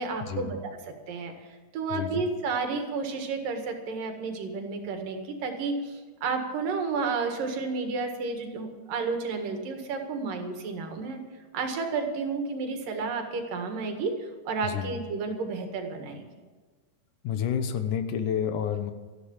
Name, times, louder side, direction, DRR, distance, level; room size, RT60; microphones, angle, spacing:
voice 1, 0.0-1.3 1.7-11.2 11.5-14.1 14.5-16.2, right 4 dB, 90° right, 4 dB, 3.5 m, -31 dB
voice 2, 1.9-2.3 14.6-14.9 17.2-18.9, left 8 dB, 75° left, 9 dB, 2.5 m, -29 dB
14.0 x 11.5 x 7.2 m, 1.4 s
omnidirectional pair, 3.8 m